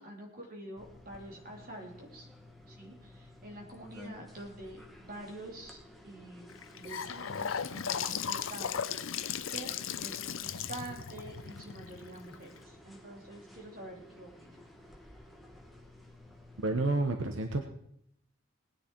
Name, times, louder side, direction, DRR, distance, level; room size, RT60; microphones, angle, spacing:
voice 1, 0.0-2.3 2.7-5.8 6.0-9.2 9.5-9.7 10.0-14.6, right 1 dB, 45° right, 0 dB, 3.1 m, -47 dB
sound 1, 0.8-16.8, left 1 dB, ahead, 1.3 m, -54 dB
Gurgling / Sink (filling or washing) / Bathtub (filling or washing), 6.5-12.6, left 8 dB, 80° left, 0.6 m, -36 dB
voice 2, 16.6-17.6, right 2 dB, 75° right, 4 dB, 1.0 m, -29 dB
19.0 x 10.0 x 4.6 m, 0.72 s
head